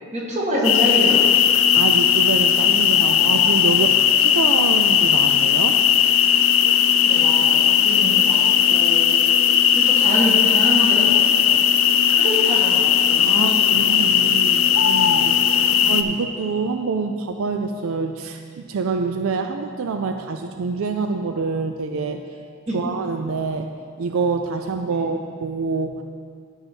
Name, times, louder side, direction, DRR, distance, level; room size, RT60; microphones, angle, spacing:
voice 1, 0.1-1.4 7.1-9.2 9.7-11.6 12.1-14.4 15.7-15.9 22.7-22.8 24.9-25.2, equal, 35° right, -4 dB, 1.6 m, -27 dB
sound 1, 0.6-16.0, left 9 dB, 80° left, 0.4 m, -17 dB
voice 2, 1.7-5.8 13.2-22.2 22.7-23.7 24.0-26.0, right 4 dB, 85° right, 6 dB, 0.4 m, -26 dB
11.5 x 5.5 x 4.5 m, 2.1 s
head